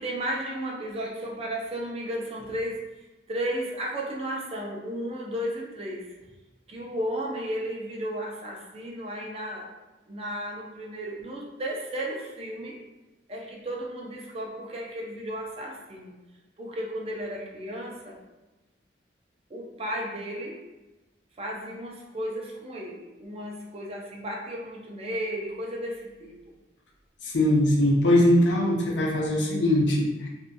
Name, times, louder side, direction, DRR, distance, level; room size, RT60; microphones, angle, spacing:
voice 1, 0.0-2.8 3.3-6.2 6.7-9.8 10.1-12.8 13.3-16.2 16.6-18.2 19.5-20.6 21.4-26.4, equal, 35° right, -1 dB, 0.5 m, -34 dB
voice 2, 27.2-30.3, left 1 dB, 85° left, -1 dB, 0.6 m, -21 dB
2.7 x 2.5 x 2.2 m, 1.1 s
head